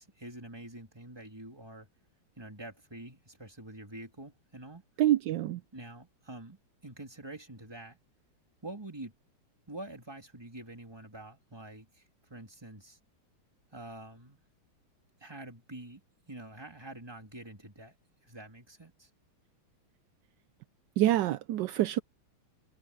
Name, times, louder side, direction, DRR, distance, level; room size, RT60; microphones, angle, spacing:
voice 1, 0.0-1.9 2.4-4.8 5.7-8.0 8.6-9.1 9.7-12.0 12.3-13.0 13.7-14.4 15.2-19.1, right 1 dB, 10° right, 3.2 m, -46 dB
voice 2, 5.0-5.6 21.0-22.0, right 13 dB, 75° right, 1.1 m, -26 dB
omnidirectional pair, 2.3 m